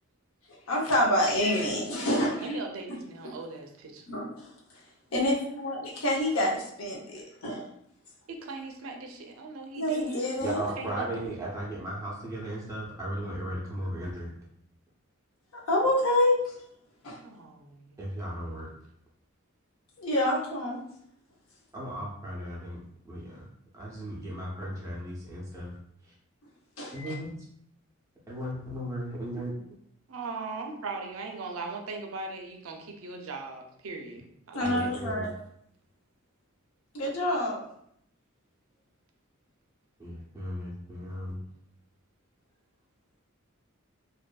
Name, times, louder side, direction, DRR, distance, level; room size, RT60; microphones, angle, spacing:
voice 1, 0.7-2.5 4.1-4.3 5.1-7.7 9.7-10.6 15.7-16.4 17.0-17.2 20.0-20.8 26.8-27.1 34.5-35.3 36.9-37.6, left 1 dB, 85° left, -2 dB, 0.7 m, -27 dB
voice 2, 2.4-4.1 8.3-10.4 10.8-11.3 17.2-18.0 30.1-35.0, right 3 dB, 85° right, 3 dB, 0.5 m, -39 dB
voice 3, 10.4-14.3 18.0-18.7 21.7-22.8 23.0-23.5 23.7-25.7 26.9-27.3 28.3-29.5 34.6-35.3 40.0-41.4, right 1 dB, 15° right, -5 dB, 0.7 m, -36 dB
2.6 x 2.5 x 2.2 m, 0.71 s
head